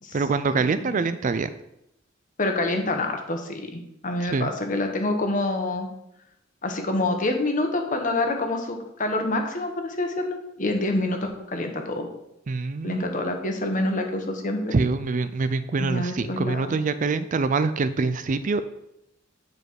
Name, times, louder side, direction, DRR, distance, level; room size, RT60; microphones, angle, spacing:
voice 1, 0.1-1.5 4.2-4.5 12.5-13.0 14.7-18.6, right 4 dB, 40° right, 12 dB, 0.4 m, -25 dB
voice 2, 2.4-5.9 6.6-12.1 12.8-14.8 15.8-16.8, left 2 dB, 40° left, 4 dB, 1.3 m, -27 dB
9.4 x 5.1 x 4.7 m, 0.82 s
head